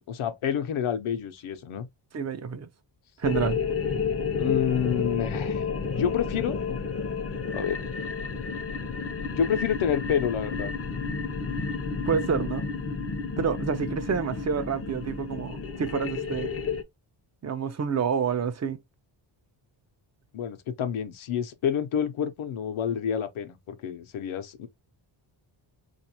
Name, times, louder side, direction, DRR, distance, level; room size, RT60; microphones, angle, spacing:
voice 1, 0.1-1.9 4.4-5.6 5.9-6.8 7.5-7.8 9.4-10.7 20.3-24.7, left 8 dB, 80° left, 0.8 m, -28 dB
voice 2, 2.1-2.7 3.2-3.6 12.1-12.6 13.4-16.5 17.4-18.8, right 6 dB, 35° right, 0.5 m, -28 dB
sound 1, 3.2-16.8, left 5 dB, 30° left, 0.6 m, -31 dB
4.1 x 2.5 x 2.8 m
wide cardioid pair, 125°, 48 cm